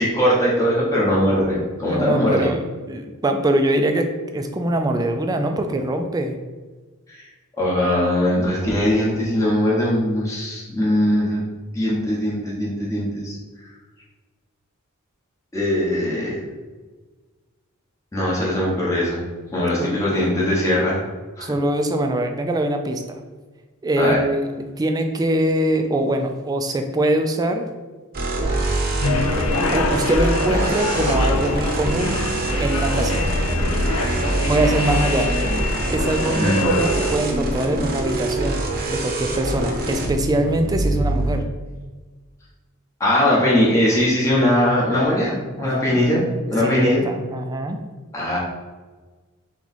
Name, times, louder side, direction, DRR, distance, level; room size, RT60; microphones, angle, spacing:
voice 1, 0.0-2.5 7.1-7.2 7.6-11.4 11.7-13.3 15.5-16.4 18.1-19.2 19.5-21.0 21.4-21.5 24.0-24.2 34.3-34.5 36.3-36.7 43.0-46.2 46.5-47.0 48.1-48.4, left 1 dB, 15° left, -6 dB, 0.8 m, -20 dB
voice 2, 1.8-6.4 19.8-19.9 21.4-23.2 23.8-27.7 29.7-32.2 32.6-33.2 34.4-35.3 35.9-41.4 45.0-46.0 46.6-47.8, right 1 dB, 15° right, 6 dB, 0.3 m, -23 dB
sound 1, 28.1-41.4, right 2 dB, 40° right, 0.7 m, -24 dB
sound 2, 29.0-37.2, left 3 dB, 75° left, 0.5 m, -25 dB
3.5 x 3.0 x 4.0 m, 1.3 s
head